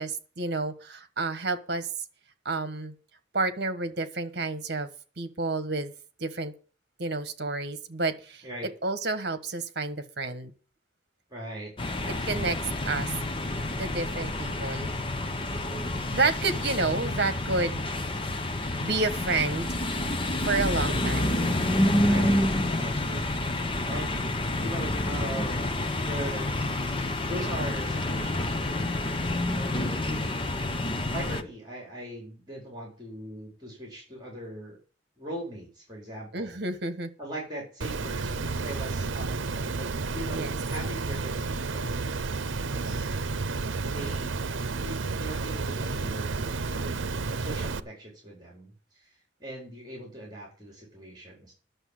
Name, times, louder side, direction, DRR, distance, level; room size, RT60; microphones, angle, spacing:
voice 1, 0.0-1.9 2.4-2.9 3.3-4.9 5.2-5.9 6.2-6.5 7.0-8.4 8.8-10.5 12.3-12.6 12.9-13.1 13.8-14.9 16.1-17.8 18.8-19.8 20.1-20.2 20.4-21.5 36.3-37.1 40.3-40.5, right 3 dB, 55° right, 10 dB, 1.4 m, -30 dB
voice 2, 11.3-11.7 12.0-12.8 13.6-14.1 15.7-16.1 22.0-22.4 22.8-23.5 23.8-24.3 24.6-26.5 27.2-29.1 29.5-30.3 31.1-34.8 35.2-36.6 37.2-43.1 43.9-44.5 44.7-47.1 47.4-51.5, right 1 dB, 20° right, -2 dB, 4.7 m, -41 dB
sound 1, 11.8-31.4, left 1 dB, 25° left, 0.9 m, -28 dB
Water, 37.8-47.8, right 3 dB, 90° right, 0.7 m, -31 dB
11.0 x 6.9 x 7.6 m, 0.38 s
head